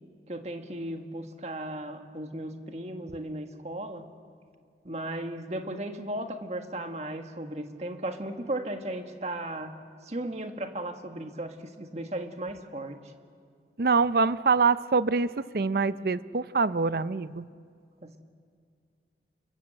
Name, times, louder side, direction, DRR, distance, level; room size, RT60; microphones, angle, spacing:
voice 1, 0.3-4.1 4.8-9.7 10.0-13.0 18.0-18.2, right 1 dB, 40° right, 5 dB, 1.6 m, -36 dB
voice 2, 13.8-17.5, right 4 dB, 55° right, 14 dB, 0.6 m, -25 dB
28.5 x 23.0 x 7.6 m, 2.1 s
head